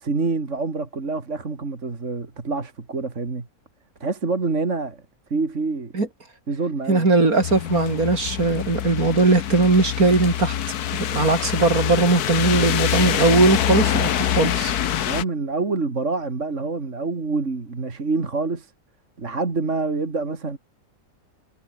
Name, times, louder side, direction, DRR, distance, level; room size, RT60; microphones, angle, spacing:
voice 1, 0.0-3.5 4.0-5.0 5.3-5.9 6.5-7.1 15.0-18.7 19.2-20.6, right 3 dB, 50° right, 3.0 m, -26 dB
voice 2, 6.9-10.5 11.0-14.7, right 3 dB, 65° right, 4.5 m, -19 dB
sound 1, 7.4-15.2, left 10 dB, 80° left, 1.5 m, -25 dB
omnidirectional pair, 1.6 m